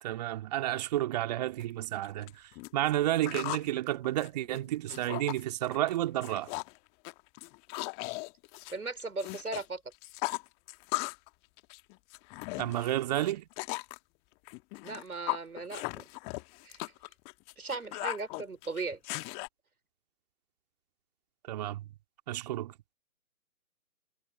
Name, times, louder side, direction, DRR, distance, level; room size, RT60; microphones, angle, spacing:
voice 1, 0.0-6.5 12.6-13.5 21.5-21.8 22.3-22.9, right 14 dB, 25° right, 2.2 m, -31 dB
sound 1, 1.6-1.7 2.0-3.7 4.0-5.4 5.7-6.0 6.2-6.8 7.0-9.6 9.9-11.3 11.6-14.0 14.5-19.5, left 29 dB, 15° left, 1.4 m, -38 dB
voice 2, 8.7-9.8 14.8-16.0 16.6-16.8 17.6-19.2, right 3 dB, 70° right, 5.2 m, -37 dB
figure-of-eight pair, 140°, 45 cm